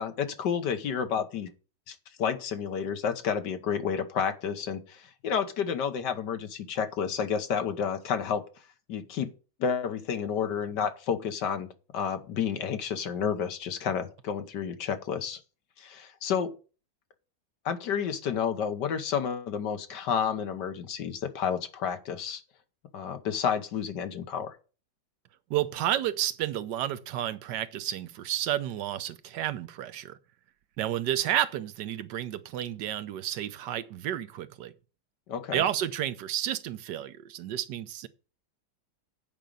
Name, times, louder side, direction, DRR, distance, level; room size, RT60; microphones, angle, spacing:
voice 1, 0.0-1.5 1.9-8.4 8.9-9.3 9.6-15.4 15.8-16.5 17.7-22.4 22.9-24.6 35.3-35.6, left 7 dB, 75° left, 1.7 m, -30 dB
voice 2, 25.5-30.2 30.8-34.7 35.5-38.1, right 12 dB, 75° right, 1.3 m, -31 dB
9.0 x 5.2 x 6.8 m
omnidirectional pair, 1.9 m